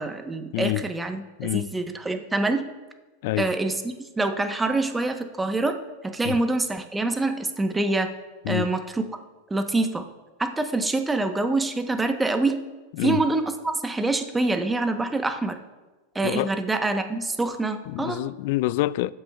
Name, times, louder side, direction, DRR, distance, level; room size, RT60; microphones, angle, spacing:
voice 1, 0.0-2.7 3.4-8.1 8.5-9.0 9.5-10.0 10.4-12.6 13.0-15.6 16.1-18.2, right 2 dB, 10° right, 0.9 m, -26 dB
voice 2, 0.5-0.8 1.4-1.7 3.2-3.5 6.3-6.4 8.5-8.7 13.0-13.2 16.2-16.5 17.9-19.1, left 17 dB, 60° left, 0.3 m, -26 dB
17.5 x 7.8 x 2.3 m
hypercardioid pair, 100°, 0 cm